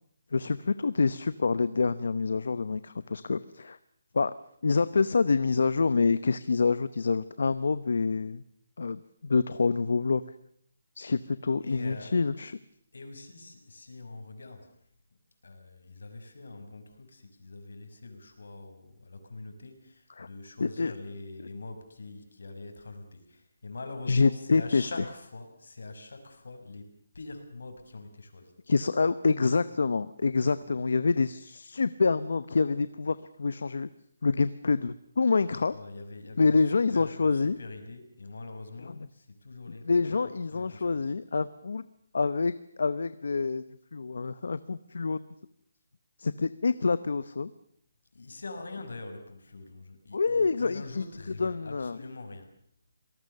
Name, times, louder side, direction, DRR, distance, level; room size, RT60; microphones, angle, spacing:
voice 1, 0.3-3.8 4.1-4.3 4.6-8.4 8.8-10.2 11.0-12.6 20.2-20.3 20.6-20.9 24.1-24.9 28.7-33.9 34.2-35.7 36.4-37.6 39.9-41.8 42.1-43.6 43.9-45.2 46.2-47.5 50.1-51.0 51.4-52.0, left 4 dB, 60° left, 15 dB, 0.8 m, -26 dB
voice 2, 11.6-12.1 12.9-14.8 15.4-28.5 35.7-41.1 48.1-52.5, left 3 dB, 80° left, 6 dB, 5.8 m, -44 dB
27.5 x 18.5 x 6.7 m, 0.66 s
hypercardioid pair, 180°, 0 cm